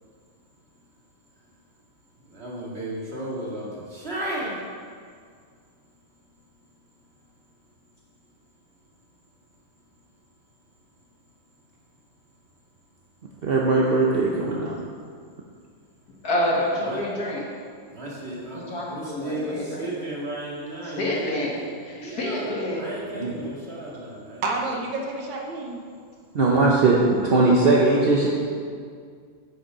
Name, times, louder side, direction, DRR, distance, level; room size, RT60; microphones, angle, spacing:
voice 1, 2.3-4.6 16.8-17.0 17.9-21.6 22.0-24.4, right 1 dB, 30° right, -6 dB, 2.3 m, -34 dB
voice 2, 13.4-14.7 23.2-23.4 26.3-28.3, right 3 dB, 50° right, -3 dB, 0.7 m, -19 dB
voice 3, 16.2-17.5 18.5-19.9 20.8-21.5 21.8-22.9, left 1 dB, 50° left, -4 dB, 2.2 m, -28 dB
voice 4, 24.4-25.9, right 3 dB, 75° right, 1 dB, 1.7 m, -29 dB
10.0 x 6.6 x 5.5 m, 2.1 s
omnidirectional pair, 2.1 m